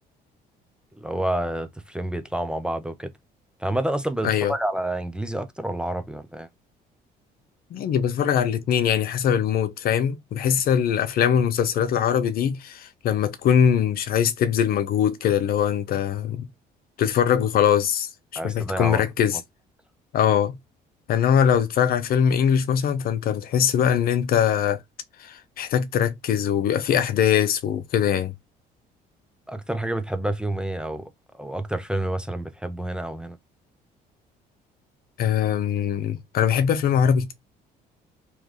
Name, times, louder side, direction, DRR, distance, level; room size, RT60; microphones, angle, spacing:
voice 1, 1.0-3.1 3.6-6.5 18.4-19.0 29.5-33.4, right 1 dB, 5° right, 0.6 m, -29 dB
voice 2, 7.7-16.5 17.0-18.1 18.4-19.4 20.1-20.6 21.1-24.8 25.2-28.3 35.2-37.3, left 8 dB, 60° left, 0.7 m, -22 dB
3.2 x 3.2 x 3.7 m
cardioid pair, 110°, 17 cm